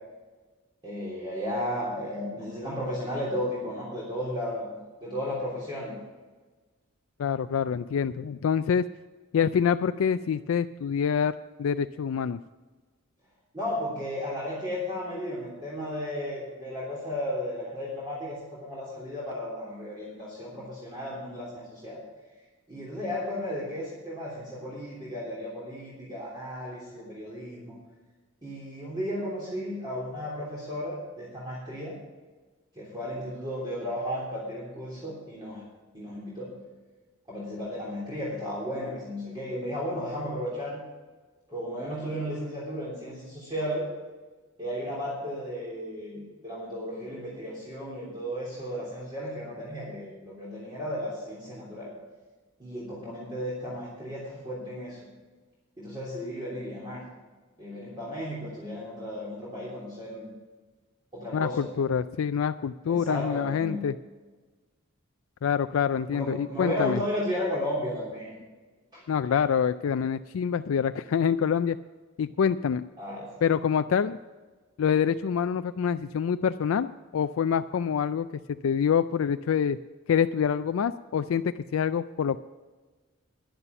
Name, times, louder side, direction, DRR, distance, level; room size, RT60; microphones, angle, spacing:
voice 1, 0.8-4.7 5.0-6.0 13.5-22.0 22.7-27.8 28.4-32.0 32.7-35.6 35.9-36.5 37.3-40.8 41.5-43.9 44.6-51.9 52.6-55.0 55.8-57.0 57.6-60.3 61.1-61.7 62.9-63.9 66.1-68.4 68.9-69.0 73.0-73.4, equal, 20° right, -7 dB, 3.3 m, -34 dB
voice 2, 7.2-8.9 9.3-11.3 11.6-12.4 61.3-64.0 65.4-67.0 69.1-71.8 72.2-72.8 73.4-74.2 74.8-76.9 77.1-79.8 80.1-82.4, left 7 dB, 80° left, 11 dB, 0.4 m, -26 dB
11.0 x 10.5 x 5.9 m, 1.3 s
head